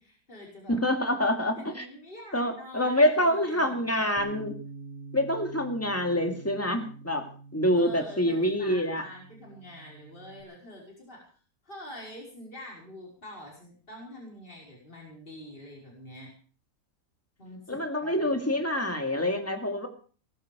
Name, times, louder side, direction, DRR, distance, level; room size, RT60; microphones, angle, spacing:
voice 1, 0.0-1.3 1.6-4.1 7.7-11.3 11.6-16.3 17.4-18.3, left 1 dB, 35° left, -2 dB, 5.3 m, -46 dB
voice 2, 0.7-1.9 2.3-4.5 5.1-7.3 7.5-9.0 17.7-19.9, left 1 dB, 10° left, 5 dB, 2.3 m, -26 dB
Bass guitar, 4.2-10.4, right 4 dB, 10° right, 2.0 m, -46 dB
20.5 x 11.5 x 5.2 m, 0.41 s
omnidirectional pair, 1.6 m